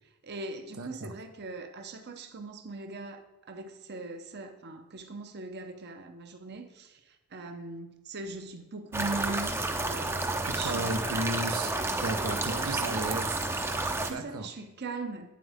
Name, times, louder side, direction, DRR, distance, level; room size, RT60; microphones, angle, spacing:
voice 1, 0.2-11.3 12.3-13.0 13.8-15.3, right 3 dB, 50° right, 0.7 m, -40 dB
voice 2, 0.8-1.1 10.4-11.7 12.0-13.4 14.1-14.5, right 2 dB, 85° right, 0.8 m, -34 dB
sound 1, 8.9-14.1, right 2 dB, 10° right, 0.6 m, -31 dB
9.0 x 7.6 x 3.5 m
head